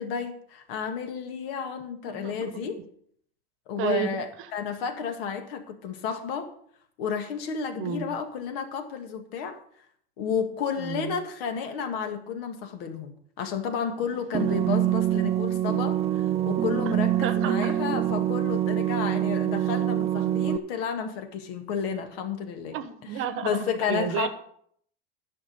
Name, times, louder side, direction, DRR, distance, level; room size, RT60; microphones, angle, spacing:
voice 1, 0.0-2.8 3.7-6.5 7.0-9.6 10.2-22.8 23.4-24.3, left 7 dB, 70° left, 6 dB, 2.0 m, -31 dB
voice 2, 2.1-2.6 3.8-4.5 7.8-8.2 10.8-11.2 14.0-14.4 16.8-16.9 17.2-17.7 22.7-24.3, right 9 dB, 40° right, 12 dB, 1.0 m, -32 dB
sound 1, 14.3-20.6, right 12 dB, 20° right, 0.4 m, -25 dB
11.0 x 6.2 x 6.8 m, 0.64 s
supercardioid pair, 130°, 31 cm